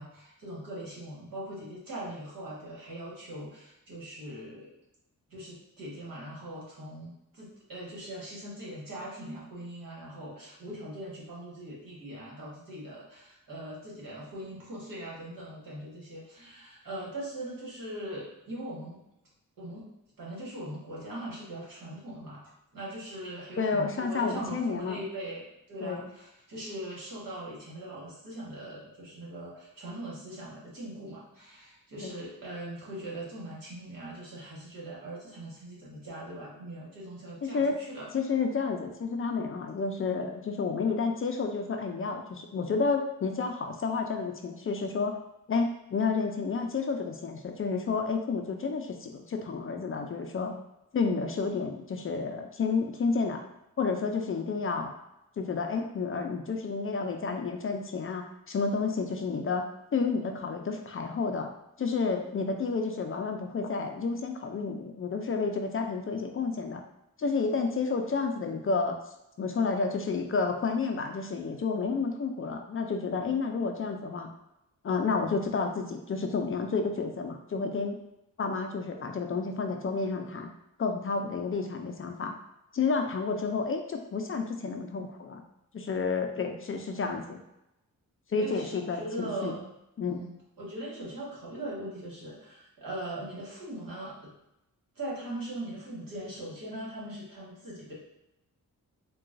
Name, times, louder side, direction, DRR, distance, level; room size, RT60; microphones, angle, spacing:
voice 1, 0.0-4.7 5.3-19.0 19.6-19.9 20.2-38.1 88.4-89.7 90.0-94.3 94.9-97.9, right 1 dB, 70° right, -6 dB, 1.5 m, -41 dB
voice 2, 23.6-25.0 25.8-26.1 32.0-32.1 37.4-37.8 38.1-45.1 45.5-50.5 50.9-53.4 53.8-54.9 55.4-59.6 59.9-61.5 61.8-66.8 67.2-68.9 69.4-74.3 74.8-78.0 78.4-80.5 80.8-82.3 82.7-85.4 85.7-87.4 88.3-89.5 90.0-90.2, left 4 dB, 40° left, 4 dB, 0.4 m, -30 dB
3.8 x 2.3 x 2.5 m, 0.87 s
cardioid pair, 80°, 34 cm